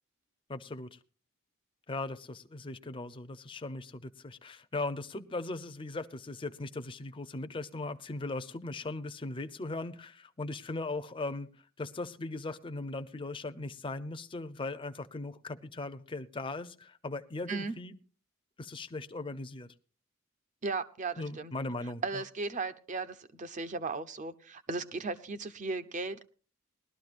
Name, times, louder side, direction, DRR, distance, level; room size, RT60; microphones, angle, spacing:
voice 1, 0.5-1.0 1.9-11.5 11.8-18.0 18.6-19.7 21.2-22.2, left 2 dB, 25° left, 9 dB, 0.6 m, -39 dB
voice 2, 20.6-21.5 22.0-26.3, right 3 dB, 35° right, 13 dB, 0.7 m, -36 dB
19.5 x 12.5 x 2.5 m, 0.39 s
head